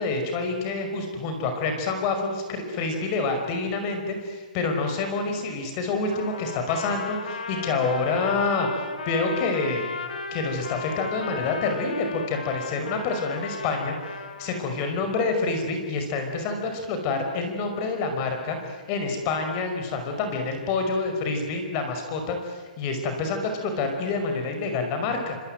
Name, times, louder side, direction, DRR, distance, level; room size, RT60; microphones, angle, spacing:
voice 1, 0.0-9.9 10.3-13.9 14.4-25.4, left 3 dB, 30° left, 5 dB, 5.2 m, -27 dB
Trumpet, 6.1-14.6, left 4 dB, 85° left, 3.9 m, -36 dB
26.0 x 24.5 x 9.2 m, 1.4 s
hypercardioid pair, 155°, 5 cm